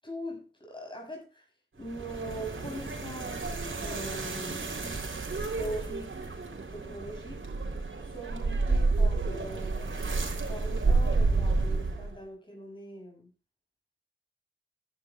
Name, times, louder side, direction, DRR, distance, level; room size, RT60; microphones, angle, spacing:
voice 1, 0.0-1.5 1.8-4.7 5.5-6.3 6.7-7.4 8.0-10.2 10.5-13.3, right 1 dB, 25° left, 6.9 m, -41 dB
sound 1, 1.8-12.2, right 3 dB, 80° right, 3.5 m, -30 dB
17.5 x 11.5 x 2.4 m
wide cardioid pair, 70°, 20 cm